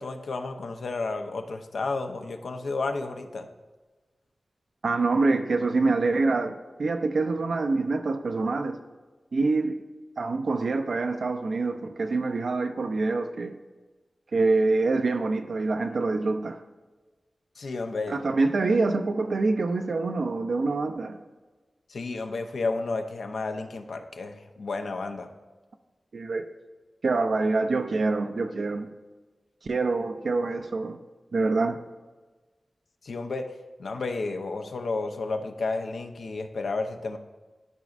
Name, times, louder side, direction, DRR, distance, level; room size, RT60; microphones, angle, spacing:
voice 1, 0.0-3.5 17.6-18.2 21.9-25.3 33.0-33.5 33.8-37.2, left 3 dB, 85° left, 6 dB, 0.6 m, -32 dB
voice 2, 4.8-8.8 9.3-9.7 10.2-13.6 14.3-16.6 18.1-21.2 26.1-26.4 27.0-28.9 29.6-31.0 31.3-31.8, right 3 dB, 75° right, 6 dB, 0.4 m, -25 dB
12.0 x 5.1 x 2.5 m, 1.3 s
wide cardioid pair, 80°, 0 cm